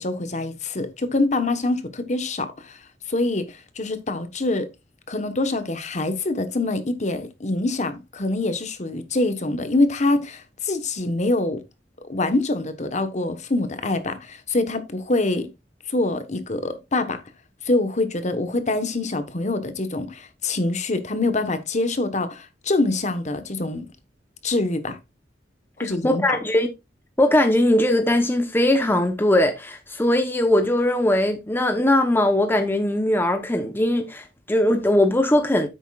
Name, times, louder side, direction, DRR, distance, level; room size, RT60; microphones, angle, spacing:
voice 1, 0.0-2.8 3.1-4.7 5.1-11.6 12.1-15.5 15.9-17.2 17.6-23.9 24.4-25.0 25.8-26.4, left 2 dB, 40° left, 1.2 m, -25 dB
voice 2, 26.0-26.7 27.2-35.7, left 1 dB, 10° left, 0.9 m, -20 dB
10.0 x 8.1 x 2.4 m
head